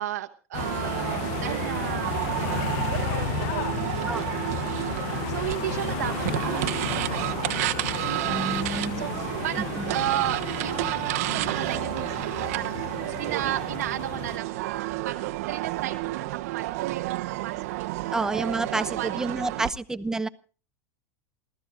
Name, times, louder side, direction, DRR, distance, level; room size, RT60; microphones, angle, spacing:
voice 1, 0.0-16.2 16.5-18.2 18.7-19.2 19.5-19.7, right 13 dB, 85° right, 5 dB, 1.2 m, -35 dB
sound 1, 0.5-14.4, left 14 dB, 60° left, 0.7 m, -33 dB
sound 2, 0.6-19.7, right 18 dB, 65° right, 1.1 m, -30 dB
voice 2, 4.1-4.4 8.3-9.0 9.8-9.9 18.1-20.3, right 2 dB, 5° right, 13 dB, 0.8 m, -29 dB
28.5 x 14.5 x 2.6 m, 0.37 s
supercardioid pair, 130°, 8 cm